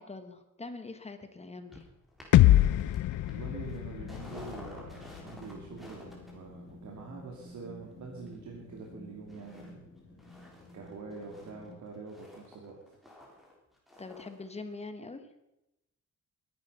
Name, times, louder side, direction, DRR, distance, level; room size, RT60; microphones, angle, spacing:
voice 1, 0.0-1.9 14.0-15.3, left 3 dB, 20° left, 8 dB, 1.2 m, -43 dB
sound 1, 1.7-8.9 9.3-9.7 10.0-14.5 14.7-14.8, left 1 dB, ahead, 4.0 m, -53 dB
sound 2, 2.3-6.2, left 14 dB, 90° left, 0.5 m, -26 dB
voice 2, 3.2-9.9 10.7-12.8, right 4 dB, 75° right, 0 dB, 2.7 m, -45 dB
sound 3, 4.0-11.8, left 2 dB, 45° left, 2.0 m, -51 dB
21.5 x 11.0 x 5.6 m, 0.89 s
wide cardioid pair, 175°, 30 cm